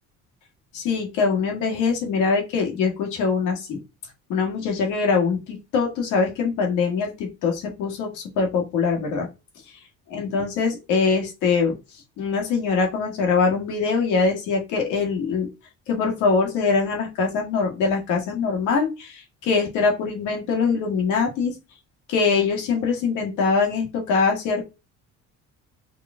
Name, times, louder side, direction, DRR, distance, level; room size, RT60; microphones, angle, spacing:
voice 1, 0.7-3.8 4.3-9.3 10.1-11.8 12.2-15.5 15.9-21.5 22.1-24.6, left 5 dB, 80° left, 1 dB, 1.6 m, -23 dB
4.9 x 3.2 x 2.2 m, 0.26 s
cardioid pair, 145°, 29 cm